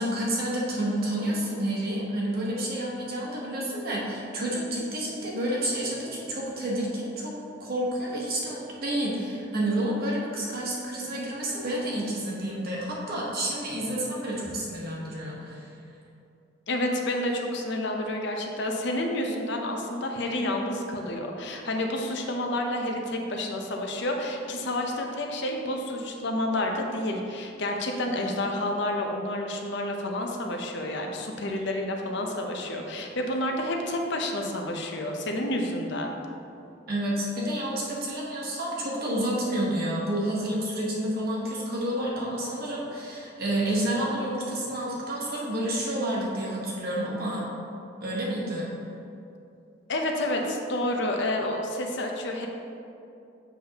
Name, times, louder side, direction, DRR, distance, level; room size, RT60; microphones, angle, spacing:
voice 1, 0.0-7.3 7.6-15.7 36.9-47.4 48.0-48.7, right 1 dB, 50° right, -4 dB, 1.3 m, -29 dB
voice 2, 16.7-36.1 49.9-52.5, left 1 dB, 65° left, 2 dB, 0.7 m, -29 dB
7.1 x 5.8 x 2.9 m, 2.7 s
head